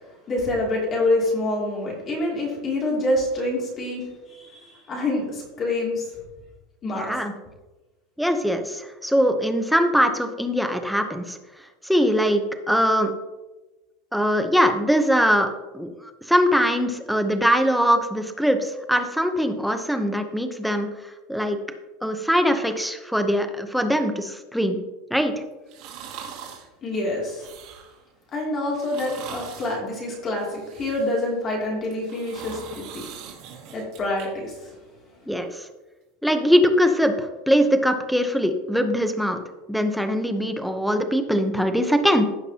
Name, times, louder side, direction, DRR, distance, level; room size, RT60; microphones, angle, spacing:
voice 1, 0.3-6.1 6.8-7.1 26.8-27.5 28.3-33.0 33.7-34.7, left 2 dB, 25° left, -2 dB, 2.7 m, -26 dB
voice 2, 6.9-7.3 8.2-11.4 11.8-13.1 14.1-15.5 15.7-15.9 16.2-21.6 22.0-24.8 25.1-25.3 35.3-35.7 36.2-39.4 39.7-42.2, equal, ahead, 7 dB, 0.7 m, -22 dB
sound 1, 25.7-26.7 27.2-28.0 28.7-29.8 30.4-31.3 31.8-34.3 34.7-34.8, right 7 dB, 50° right, 2.5 m, -41 dB
15.5 x 5.8 x 2.9 m, 1.1 s
supercardioid pair, 155°, 0 cm